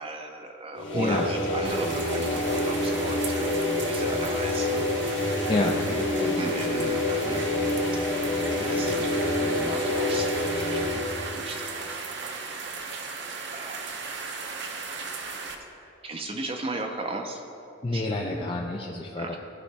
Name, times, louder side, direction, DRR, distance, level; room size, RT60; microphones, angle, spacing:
voice 1, 0.0-7.5 7.9-8.2 8.6-12.0 13.5-14.3 15.8-17.4 17.9-18.1 19.2-19.4, right 2 dB, 30° right, 3 dB, 0.5 m, -37 dB
sound 1, 0.7-11.2, left 2 dB, 75° left, 1.2 m, -27 dB
voice 2, 0.9-1.3 5.5-5.7 17.8-19.4, left 2 dB, 25° left, 0 dB, 0.4 m, -28 dB
sound 2, 1.6-15.5, right 4 dB, 65° right, 0.8 m, -36 dB
15.0 x 5.5 x 3.3 m, 2.9 s
head